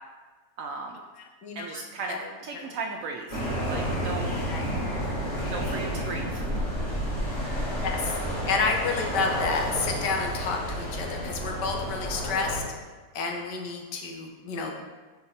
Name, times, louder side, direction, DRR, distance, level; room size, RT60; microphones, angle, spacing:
voice 1, 0.6-1.0 1.6-3.4 3.7-4.3 5.5-6.4, right 4 dB, 70° right, 2 dB, 0.8 m, -36 dB
voice 2, 1.4-1.8 2.1-2.2 2.6-2.7 4.5-4.7 7.8-8.2 8.4-12.6 13.1-14.8, left 4 dB, 90° left, 2 dB, 1.4 m, -30 dB
sound 1, 3.3-12.6, equal, 30° left, 2.0 m, -30 dB
5.2 x 4.6 x 4.2 m, 1.3 s
omnidirectional pair, 1.8 m